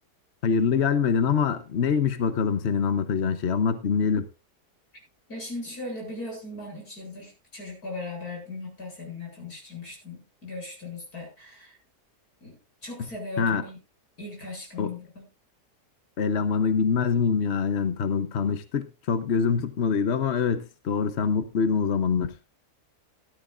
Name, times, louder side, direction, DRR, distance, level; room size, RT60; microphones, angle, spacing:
voice 1, 0.4-4.3 13.0-13.1 13.4-13.6 14.8-14.9 16.2-22.4, left 6 dB, 50° left, 1.0 m, -24 dB
voice 2, 5.3-11.8 12.4-13.8 14.2-15.3, left 2 dB, 65° left, 8.2 m, -38 dB
17.5 x 12.5 x 2.5 m
omnidirectional pair, 1.7 m